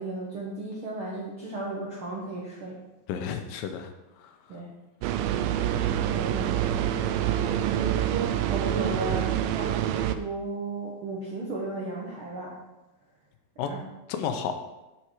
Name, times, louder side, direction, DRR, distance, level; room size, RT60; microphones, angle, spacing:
voice 1, 0.0-2.8 4.5-4.7 5.7-6.7 7.5-9.7 10.1-12.6 13.7-13.8, right 3 dB, 65° right, -4 dB, 1.3 m, -34 dB
voice 2, 3.1-4.6 13.6-13.7 14.1-14.6, left 7 dB, 80° left, 7 dB, 2.4 m, -32 dB
sound 1, 5.0-10.2, right 11 dB, 80° right, 2.2 m, -26 dB
7.6 x 7.6 x 4.8 m, 1.0 s
omnidirectional pair, 4.1 m